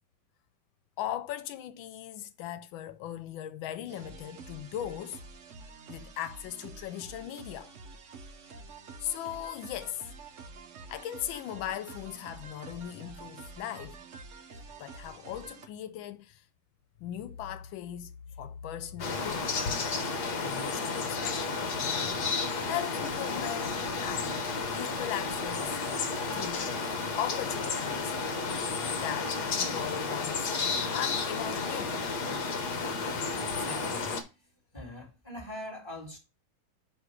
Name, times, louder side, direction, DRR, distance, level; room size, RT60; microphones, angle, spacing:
voice 1, 1.0-5.2 5.9-7.7 9.0-10.0 10.9-14.0 14.8-16.4 17.0-19.5 20.4-21.6 22.6-24.4 24.7-25.8 26.3-26.8 27.2-28.2 29.0-30.6 30.9-32.0, left 11 dB, 85° left, 1.4 m, -38 dB
sound 1, 3.9-15.7, right 3 dB, 55° right, 0.9 m, -48 dB
sound 2, 19.0-34.2, left 4 dB, 60° left, 1.5 m, -32 dB
voice 2, 33.0-34.4 34.7-36.2, left 1 dB, 15° left, 2.4 m, -43 dB
9.0 x 3.1 x 4.8 m
omnidirectional pair, 2.1 m